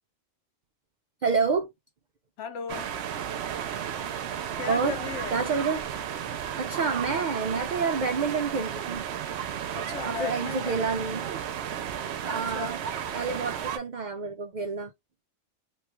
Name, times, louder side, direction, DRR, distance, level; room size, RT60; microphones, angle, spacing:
voice 1, 1.2-1.7 4.7-5.0 5.3-5.8 6.6-9.1 10.0-11.3 12.2-12.8 13.1-14.9, right 5 dB, 85° right, 0.4 m, -28 dB
voice 2, 2.4-2.9 4.6-5.5 9.7-10.8 12.3-12.7, left 6 dB, 70° left, 1.0 m, -36 dB
sound 1, 2.7-13.8, right 9 dB, 65° right, 0.8 m, -33 dB
3.1 x 2.3 x 2.9 m
omnidirectional pair, 1.3 m